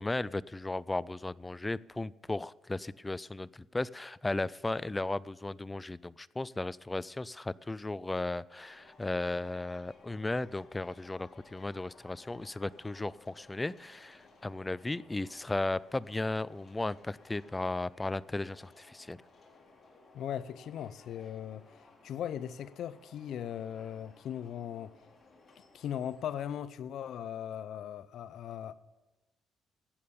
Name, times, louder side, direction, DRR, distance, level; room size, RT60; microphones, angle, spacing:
voice 1, 0.0-19.2, left 2 dB, 15° left, 0.3 m, -35 dB
sound 1, 8.6-26.6, left 3 dB, 40° left, 3.5 m, -59 dB
voice 2, 20.1-21.7 22.0-24.9 25.7-28.7, left 9 dB, 75° left, 0.5 m, -38 dB
14.5 x 8.6 x 7.0 m
cardioid pair, 90°, 0 cm